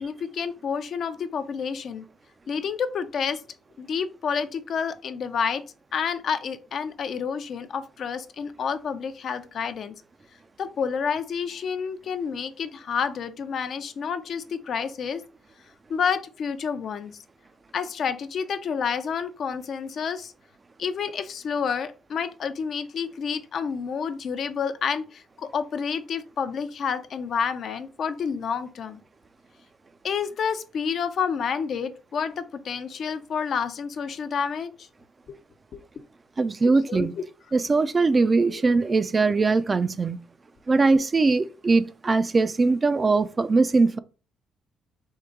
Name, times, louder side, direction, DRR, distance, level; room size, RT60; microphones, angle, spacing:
voice 1, 0.0-2.1 2.5-3.4 3.8-5.6 5.9-9.9 10.6-15.2 15.9-17.2 17.7-20.3 20.8-29.0 30.0-34.9 35.3-35.4 35.7-35.8 36.6-37.1 38.5-38.6, left 6 dB, 60° left, 0.5 m, -29 dB
voice 2, 36.4-37.1 37.5-40.2 40.7-44.0, right 3 dB, 30° right, 0.3 m, -21 dB
3.7 x 2.7 x 4.5 m
cardioid pair, 90°, 0 cm